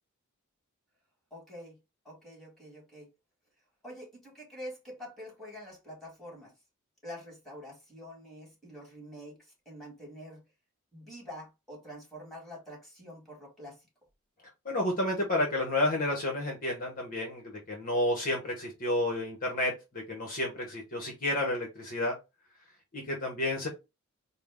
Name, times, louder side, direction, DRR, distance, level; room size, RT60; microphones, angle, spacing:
voice 1, 1.3-1.8 2.1-3.1 3.8-6.5 7.0-9.3 9.7-10.4 10.9-13.8, equal, ahead, 2.0 m, -46 dB
voice 2, 14.6-22.1 22.9-23.7, left 1 dB, 40° left, 0.9 m, -31 dB
4.2 x 2.0 x 3.5 m
head